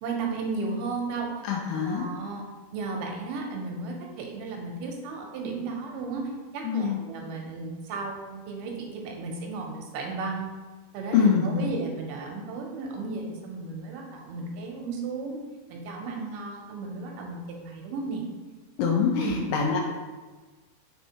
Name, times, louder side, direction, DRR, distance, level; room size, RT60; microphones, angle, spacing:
voice 1, 0.0-1.3 1.7-2.5 2.7-10.5 10.9-15.4 15.7-18.2 19.2-19.4, right 4 dB, 80° right, 1 dB, 2.0 m, -34 dB
voice 2, 1.4-2.1 6.6-7.0 11.1-11.7 18.8-19.8, left 6 dB, 80° left, 1 dB, 2.0 m, -24 dB
4.5 x 4.1 x 2.8 m, 1.3 s
omnidirectional pair, 3.9 m